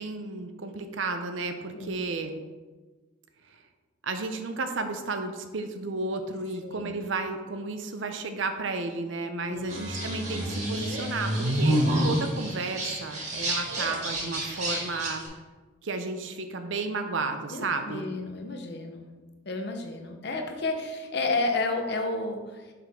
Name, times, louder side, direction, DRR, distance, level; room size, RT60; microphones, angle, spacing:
voice 1, 0.0-2.4 4.0-15.2 15.8-18.1, right 3 dB, 75° right, 7 dB, 0.6 m, -33 dB
voice 2, 6.6-7.0 9.5-9.7 11.6-12.0 17.5-19.1 19.4-22.6, left 3 dB, 55° left, 4 dB, 0.8 m, -31 dB
sound 1, 9.7-15.3, right 1 dB, 35° right, 1.8 m, -28 dB
5.8 x 5.6 x 3.6 m, 1.3 s
head